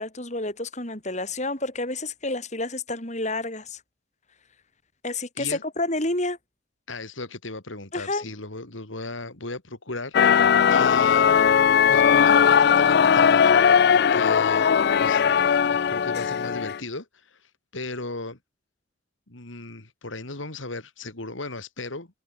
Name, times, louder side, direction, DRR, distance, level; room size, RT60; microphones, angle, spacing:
voice 1, 0.0-3.8 5.0-6.4 7.9-8.3, left 2 dB, 35° left, 5.6 m, -29 dB
voice 2, 6.9-11.3 11.9-13.6 13.9-14.7 15.0-18.4 19.3-22.1, left 2 dB, 80° left, 3.2 m, -36 dB
sound 1, 10.1-16.8, left 7 dB, 55° left, 0.4 m, -18 dB
head